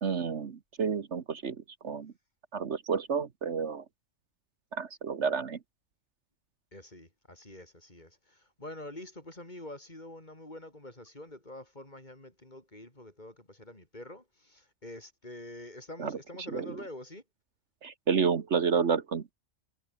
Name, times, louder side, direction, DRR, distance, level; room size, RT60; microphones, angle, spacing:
voice 1, 0.0-1.6 1.8-2.1 2.5-3.8 4.7-5.6 16.0-16.1 16.5-16.7 17.8-19.3, right 6 dB, 60° right, 1.5 m, -30 dB
voice 2, 6.7-17.2, left 1 dB, 35° left, 4.7 m, -46 dB
omnidirectional pair, 1.3 m